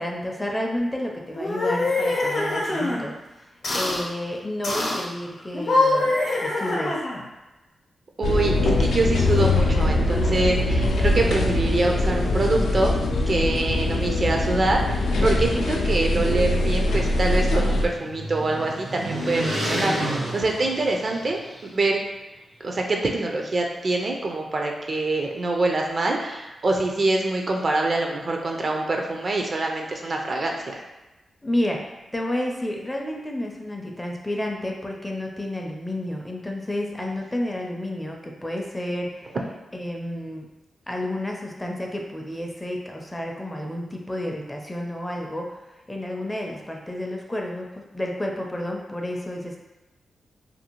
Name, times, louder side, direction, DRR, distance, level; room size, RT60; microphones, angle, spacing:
voice 1, 0.0-3.2 3.7-6.9 31.4-31.8 32.1-39.4 39.7-40.5 40.9-45.5 45.9-49.6, left 1 dB, 15° left, 0 dB, 0.4 m, -30 dB
sound 1, 1.3-3.0 3.6-4.0 4.6-5.1 5.5-7.3, left 2 dB, 60° left, 0.7 m, -24 dB
sound 2, 8.2-17.9, left 2 dB, 90° left, 0.3 m, -22 dB
voice 2, 8.2-13.0 13.3-22.0 22.6-30.8 37.0-37.4, right 2 dB, 50° right, 1 dB, 0.4 m, -25 dB
sound 3, 17.9-21.6, right 1 dB, 85° right, 1.0 m, -30 dB
2.6 x 2.3 x 2.9 m, 1.1 s
cardioid pair, 95°, 0 cm